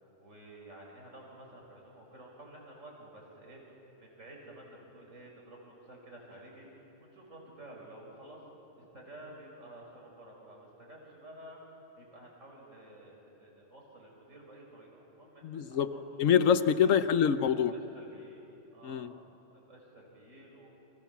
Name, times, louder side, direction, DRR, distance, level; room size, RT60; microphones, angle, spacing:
voice 1, 0.0-6.7 7.0-8.4 8.8-11.6 12.0-16.3 16.8-17.2 17.7-18.4 18.7-19.2 19.5-20.7, right 1 dB, 75° right, -2 dB, 6.4 m, -52 dB
voice 2, 15.4-15.9 16.2-17.7 18.8-19.1, left 8 dB, 80° left, 11 dB, 1.3 m, -25 dB
30.0 x 26.0 x 7.4 m, 3.0 s
omnidirectional pair, 1.3 m